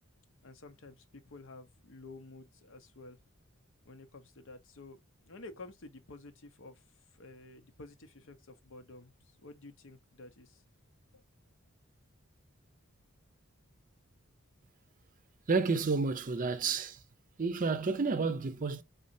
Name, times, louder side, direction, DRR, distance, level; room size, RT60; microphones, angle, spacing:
voice 1, 0.4-3.2 3.8-6.8 7.1-10.6 11.1-11.2, left 2 dB, 65° left, 0.8 m, -51 dB
voice 2, 15.5-17.0 17.4-18.8, right 4 dB, 40° right, 0.6 m, -30 dB
4.2 x 4.0 x 2.7 m
head